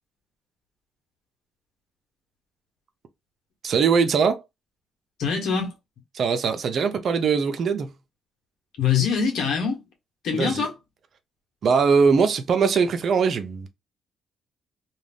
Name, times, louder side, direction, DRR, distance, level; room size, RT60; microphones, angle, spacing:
voice 1, 3.6-4.4 6.1-7.9 10.3-10.7 11.6-13.7, right 5 dB, 60° right, 0.6 m, -21 dB
voice 2, 5.2-5.7 8.8-9.8 10.2-10.7, left 6 dB, 75° left, 1.2 m, -23 dB
2.5 x 2.3 x 3.3 m
cardioid pair, 80°, 0 cm